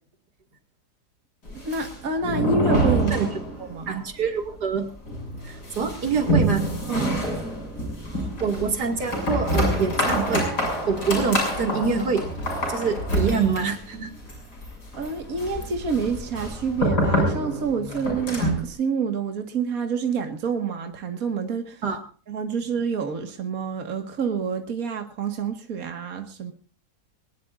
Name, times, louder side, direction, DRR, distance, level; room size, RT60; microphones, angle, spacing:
sound 1, 1.5-3.8 4.1-4.2 4.5-4.6 5.1-18.7, right 1 dB, 90° left, 7.8 m, -26 dB
voice 1, 1.6-3.3 3.7-3.9 6.9-7.1 15.0-21.8 22.3-26.5, right 5 dB, 60° right, 5 dB, 2.2 m, -27 dB
voice 2, 3.9-4.9 5.4-6.6 8.4-10.5 10.9-12.3 12.7-14.1 21.8-22.0, right 5 dB, 80° right, 5 dB, 2.8 m, -25 dB
22.5 x 20.0 x 2.6 m, 0.37 s
omnidirectional pair, 1.7 m